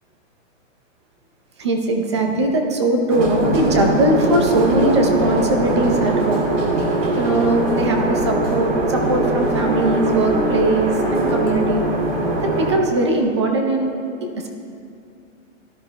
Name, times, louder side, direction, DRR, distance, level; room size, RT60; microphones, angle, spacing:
voice 1, 1.6-6.5 7.1-11.8 12.4-13.9 14.4-14.5, right 2 dB, 20° right, 3 dB, 0.7 m, -20 dB
sound 1, 3.1-12.8, right 2 dB, 65° right, 2.6 m, -21 dB
18.0 x 13.0 x 2.2 m, 2.5 s
hypercardioid pair, 175°, 39 cm